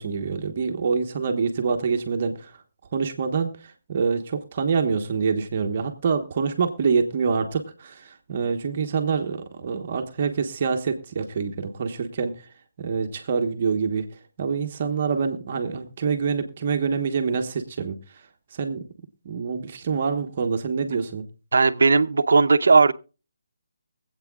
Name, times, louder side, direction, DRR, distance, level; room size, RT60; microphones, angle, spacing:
voice 1, 0.0-2.5 2.9-12.4 12.8-14.1 14.4-18.2 18.5-18.8 19.2-21.2, right 5 dB, 35° right, 1.2 m, -26 dB
voice 2, 21.5-22.9, right 4 dB, 70° right, 0.8 m, -17 dB
24.0 x 8.3 x 2.4 m
hypercardioid pair, 170°, 0 cm